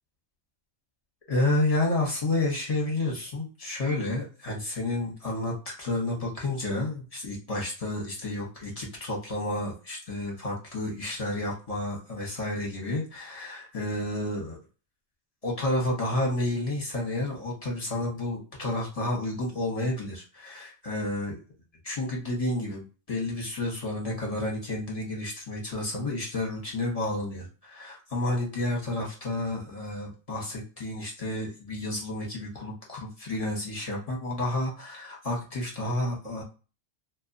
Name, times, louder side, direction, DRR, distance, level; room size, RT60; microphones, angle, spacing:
voice 1, 1.3-14.6 15.4-21.4 21.8-36.4, left 1 dB, 35° left, -2 dB, 0.8 m, -30 dB
2.6 x 2.3 x 2.5 m, 0.35 s
omnidirectional pair, 1.4 m